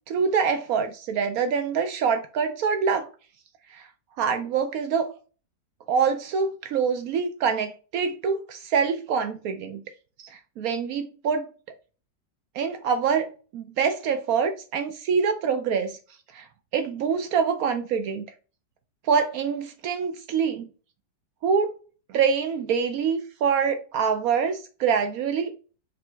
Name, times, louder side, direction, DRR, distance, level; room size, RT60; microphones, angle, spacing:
voice 1, 0.1-3.1 3.7-3.8 4.2-5.1 5.9-9.8 10.2-11.5 12.5-16.0 16.3-16.5 16.7-18.2 19.0-20.7 21.4-21.8 22.1-25.5, right 6 dB, 70° right, 0.8 m, -25 dB
5.1 x 2.7 x 3.3 m
omnidirectional pair, 1.9 m